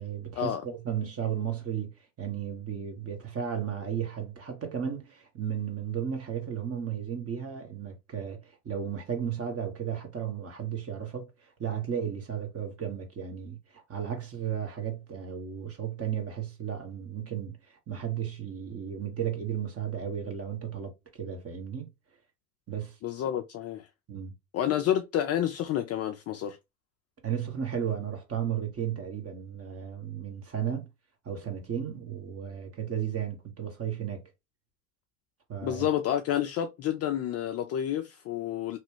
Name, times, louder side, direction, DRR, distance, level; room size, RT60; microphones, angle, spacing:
voice 1, 0.0-21.9 22.7-23.0 24.1-24.3 27.2-30.9 31.2-34.2 35.5-35.9, right 8 dB, 30° right, 1.2 m, -34 dB
voice 2, 23.0-23.9 24.5-26.6 35.6-38.8, left 10 dB, 35° left, 0.4 m, -29 dB
3.0 x 2.3 x 2.9 m
hypercardioid pair, 80°, 48 cm